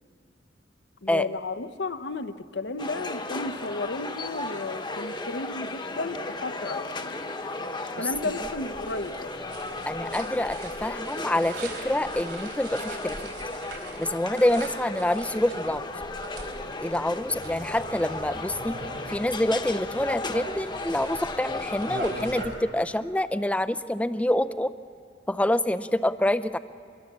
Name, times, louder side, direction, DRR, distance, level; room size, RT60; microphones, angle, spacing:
voice 1, 1.0-7.1 8.0-9.5, left 3 dB, 75° left, 10 dB, 0.9 m, -33 dB
sound 1, 2.8-22.4, left 2 dB, 25° left, 1.1 m, -35 dB
sound 2, 8.1-22.6, right 2 dB, 65° right, 3.8 m, -42 dB
voice 2, 9.9-13.2 14.0-15.9 16.8-18.8 19.1-24.7 25.3-26.6, left 1 dB, 10° left, 11 dB, 0.5 m, -26 dB
24.5 x 22.0 x 7.4 m, 2.3 s
head